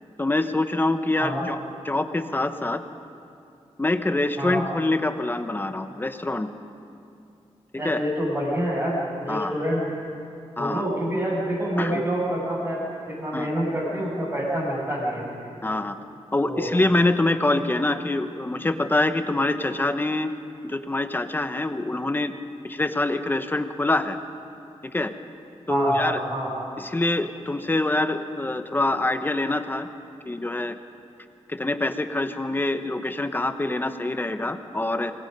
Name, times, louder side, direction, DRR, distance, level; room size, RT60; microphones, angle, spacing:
voice 1, 0.2-1.6 1.8-2.8 3.8-6.5 7.8-8.0 9.3-9.6 10.6-10.9 11.8-12.0 13.3-13.5 15.6-16.0 16.3-20.3 20.6-22.3 22.6-24.2 24.9-25.1 25.7-26.2 26.8-29.9 30.3-30.7 31.5-35.1, left 2 dB, 20° left, 9 dB, 1.0 m, -25 dB
voice 2, 7.7-9.8 10.6-15.3 16.4-16.7 25.7-26.5, equal, 25° right, -10 dB, 6.5 m, -27 dB
26.5 x 20.0 x 5.4 m, 2.5 s
wide cardioid pair, 135°, 11 cm